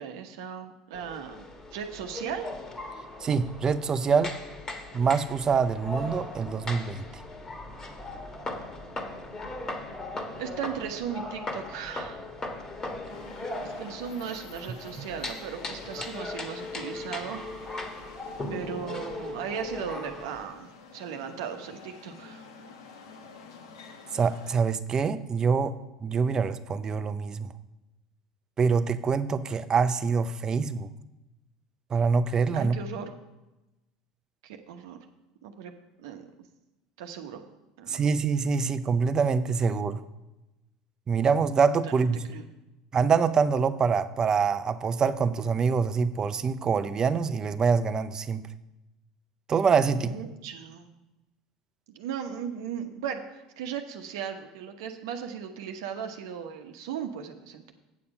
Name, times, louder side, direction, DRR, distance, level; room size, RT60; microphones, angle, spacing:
voice 1, 0.0-2.5 10.4-12.3 13.6-17.4 18.5-22.5 32.5-33.2 34.4-35.0 35.4-35.7 36.0-36.3 37.0-37.4 37.8-38.1 41.9-42.0 42.3-42.5 49.9-50.9 51.9-57.7, right 8 dB, 75° right, 5 dB, 1.0 m, -37 dB
sound 1, 0.9-20.5, left 2 dB, 30° left, 1.6 m, -38 dB
voice 2, 3.2-4.4 4.9-7.0 15.0-15.1 24.1-25.8 26.0-27.5 28.6-30.9 31.9-32.8 37.9-40.0 41.1-42.3 42.9-48.4 49.5-50.1, right 5 dB, 30° right, 12 dB, 0.6 m, -25 dB
sound 2, 13.1-24.5, left 5 dB, 85° left, 1.1 m, -49 dB
8.4 x 7.0 x 5.4 m, 1.0 s
hypercardioid pair, 85°, 2 cm